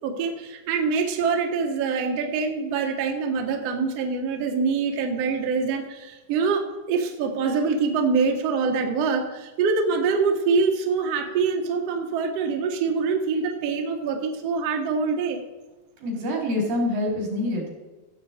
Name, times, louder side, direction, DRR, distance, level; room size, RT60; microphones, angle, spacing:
voice 1, 0.0-15.4, right 5 dB, 60° right, 2 dB, 1.9 m, -25 dB
voice 2, 16.0-17.7, left 1 dB, 80° right, -1 dB, 5.0 m, -26 dB
16.0 x 7.7 x 4.2 m, 1.2 s
omnidirectional pair, 3.9 m